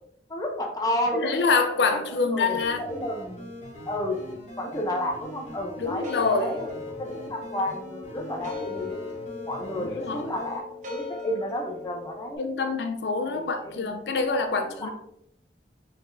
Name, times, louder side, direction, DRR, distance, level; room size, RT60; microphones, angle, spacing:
voice 1, 0.3-1.3 1.9-3.5 3.9-4.2 4.6-6.7 7.0-9.0 9.4-10.6 10.9-12.5 13.3-14.0 14.8-14.9, left 1 dB, 20° left, 0.6 m, -31 dB
voice 2, 1.1-2.8 5.8-6.5 9.8-10.3 12.4-14.9, left 4 dB, 75° left, 0.5 m, -26 dB
sound 1, 2.5-10.6, equal, 40° left, 1.1 m, -43 dB
sound 2, 5.8-12.3, left 4 dB, 45° right, 0.9 m, -38 dB
4.1 x 4.0 x 2.6 m
head